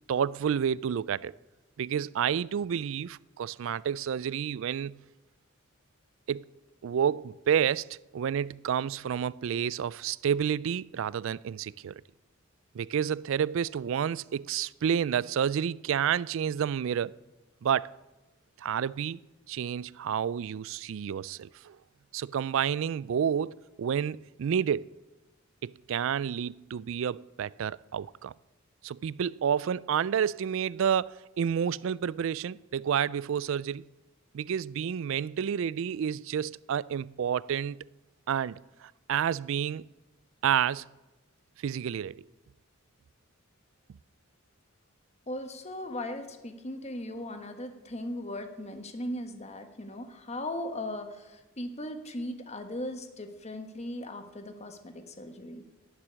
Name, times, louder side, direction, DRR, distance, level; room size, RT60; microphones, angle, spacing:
voice 1, 0.1-1.3 1.8-4.9 6.3-6.4 6.8-12.0 12.7-17.1 17.6-17.9 18.6-19.2 19.5-21.8 22.1-24.9 25.6-28.3 28.8-33.8 34.3-37.8 38.3-39.9 40.4-40.9 41.6-42.2, right 8 dB, 65° right, 0.3 m, -30 dB
voice 2, 45.3-55.6, left 1 dB, 30° left, 1.3 m, -38 dB
11.5 x 7.5 x 9.9 m
head